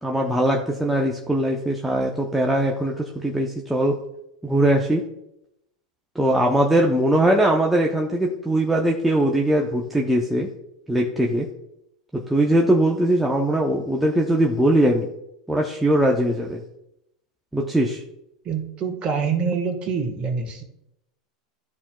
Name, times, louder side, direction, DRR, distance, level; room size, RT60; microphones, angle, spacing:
voice 1, 0.0-4.0 4.4-5.0 6.2-10.5 10.9-11.5 12.1-15.1 15.5-16.6 17.5-18.0, right 1 dB, 5° right, -1 dB, 0.8 m, -21 dB
voice 2, 18.4-20.6, right 5 dB, 35° right, 4 dB, 1.6 m, -25 dB
12.5 x 4.3 x 2.4 m, 0.83 s
hypercardioid pair, 100°, 3 cm